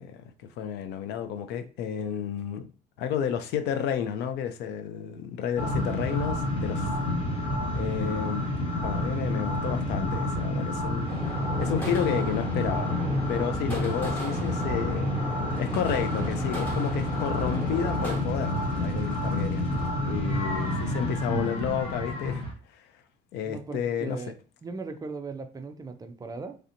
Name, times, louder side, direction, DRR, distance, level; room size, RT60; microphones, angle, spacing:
voice 1, 0.0-2.7 3.0-6.9 7.7-8.5 8.8-12.9 13.3-15.3 15.6-19.7 20.0-22.4 22.7-22.8 23.3-24.2, left 8 dB, 80° left, 0.4 m, -31 dB
sound 1, 5.6-22.5, left 1 dB, 35° left, 1.1 m, -29 dB
sound 2, 11.1-18.2, equal, 10° left, 1.3 m, -38 dB
sound 3, 15.5-19.9, right 2 dB, 60° left, 1.0 m, -44 dB
voice 2, 23.3-24.4 24.6-26.6, right 4 dB, 20° right, 0.4 m, -39 dB
3.2 x 2.8 x 2.6 m
cardioid pair, 110°, 17 cm